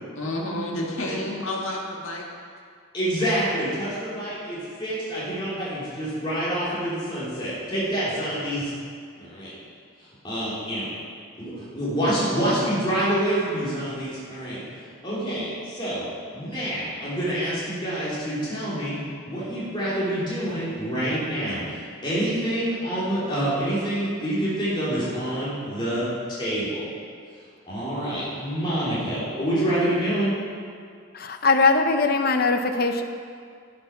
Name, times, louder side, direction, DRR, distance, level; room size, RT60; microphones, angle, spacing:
voice 1, 0.2-2.3, left 1 dB, 80° left, -1 dB, 1.7 m, -30 dB
voice 2, 2.9-8.7 9.2-9.5 10.2-10.9 11.4-14.6 15.0-16.0 16.3-19.0 19.3-26.8 27.7-30.3, right 1 dB, 20° left, -9 dB, 3.0 m, -27 dB
voice 3, 31.1-33.0, left 3 dB, 45° left, 6 dB, 0.7 m, -21 dB
11.5 x 6.7 x 6.0 m, 2.2 s
head